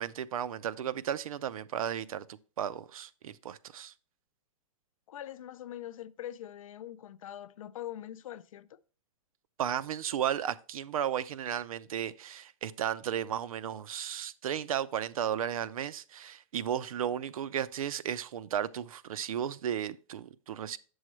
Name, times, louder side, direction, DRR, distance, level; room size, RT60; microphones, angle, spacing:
voice 1, 0.0-2.2 2.6-3.9 9.6-20.8, right 9 dB, 80° right, 0.5 m, -34 dB
voice 2, 5.1-8.8, left 12 dB, 75° left, 0.5 m, -43 dB
8.2 x 6.3 x 3.1 m
hypercardioid pair, 165°, 18 cm